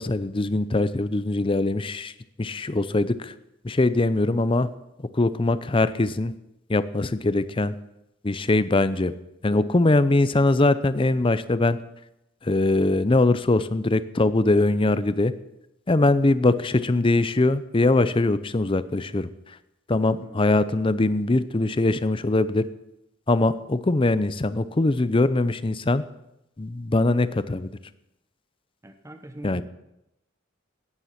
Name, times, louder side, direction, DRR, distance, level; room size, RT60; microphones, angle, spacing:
voice 1, 0.0-2.1 2.4-3.3 3.6-4.7 5.0-6.3 6.7-7.7 8.2-9.1 9.4-11.8 12.4-15.3 15.9-19.6 19.9-22.7 23.3-26.0 26.6-27.7 29.4-29.6, left 2 dB, 25° left, 14 dB, 0.6 m, -22 dB
voice 2, 28.8-29.6, right 1 dB, 15° right, 7 dB, 1.0 m, -41 dB
15.5 x 9.8 x 5.8 m, 0.88 s
head